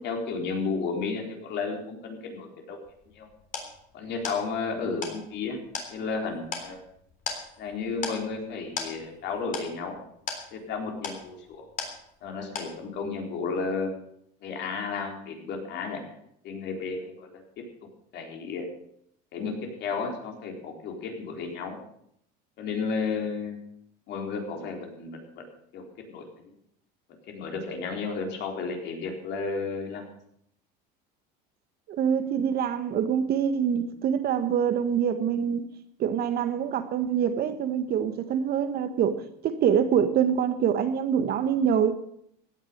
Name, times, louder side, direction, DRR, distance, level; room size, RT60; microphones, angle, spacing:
voice 1, 0.0-2.8 3.1-3.3 3.9-5.6 5.9-6.8 7.6-10.0 10.5-11.6 12.2-13.9 14.4-16.0 16.4-17.6 18.1-18.7 19.3-21.8 22.6-23.6 24.1-25.3 25.7-26.5 27.1-30.0, left 4 dB, 55° left, 2 dB, 4.1 m, -33 dB
sound 1, 2.9-12.3 12.6-13.1, left 5 dB, 40° left, 3.6 m, -38 dB
voice 2, 31.9-35.6 36.0-39.2 39.4-41.9, right 8 dB, 50° right, 10 dB, 1.7 m, -25 dB
16.0 x 9.3 x 6.7 m, 0.71 s
supercardioid pair, 115°, 21 cm